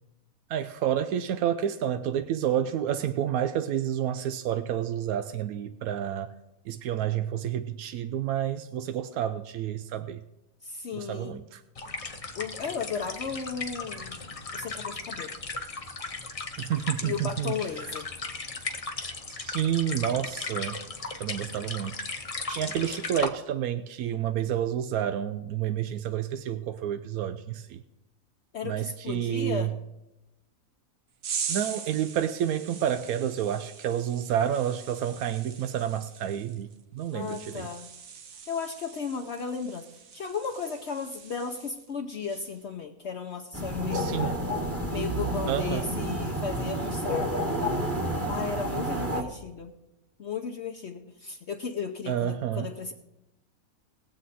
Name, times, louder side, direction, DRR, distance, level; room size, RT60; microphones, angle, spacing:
voice 1, 0.5-6.3 6.7-10.2 10.9-11.6 16.6-17.9 19.4-20.8 21.2-22.0 22.5-27.8 28.6-29.7 31.5-37.7 43.9-44.4 45.5-45.9 52.1-52.7, right 10 dB, 90° right, 10 dB, 1.1 m, -29 dB
voice 2, 10.6-11.4 12.3-14.2 14.5-15.4 17.0-18.1 28.5-29.7 37.1-37.9 38.5-44.1 44.9-47.4 48.3-49.7 50.2-52.9, left 5 dB, 55° left, 3 dB, 0.9 m, -35 dB
sound 1, 11.8-23.3, left 3 dB, 30° left, 0.8 m, -37 dB
sound 2, 31.2-41.9 42.3-42.6, right 7 dB, 70° right, 1.3 m, -41 dB
sound 3, 43.5-49.2, equal, 10° right, 1.0 m, -30 dB
20.0 x 7.7 x 4.2 m, 0.96 s
omnidirectional pair, 1.5 m